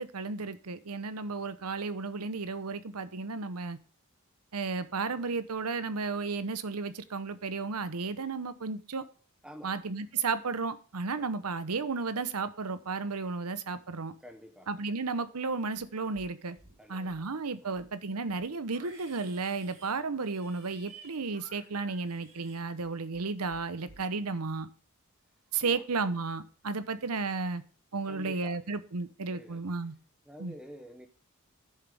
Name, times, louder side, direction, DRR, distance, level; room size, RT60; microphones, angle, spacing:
voice 1, 0.0-3.8 4.5-9.0 9.6-14.1 14.7-16.6 16.9-24.7 25.5-27.6 27.9-29.9 30.4-30.5, right 4 dB, 85° right, 0.9 m, -33 dB
voice 2, 14.2-14.7 16.8-17.2 17.6-17.8 25.6-25.8 28.1-28.6 29.3-29.6 30.3-31.1, equal, 5° right, 0.8 m, -48 dB
Livestock farm animals working animals, 15.7-16.3 16.6-17.3 17.6-23.2 23.5-24.0, right 4 dB, 60° right, 3.7 m, -55 dB
10.0 x 7.3 x 3.5 m
head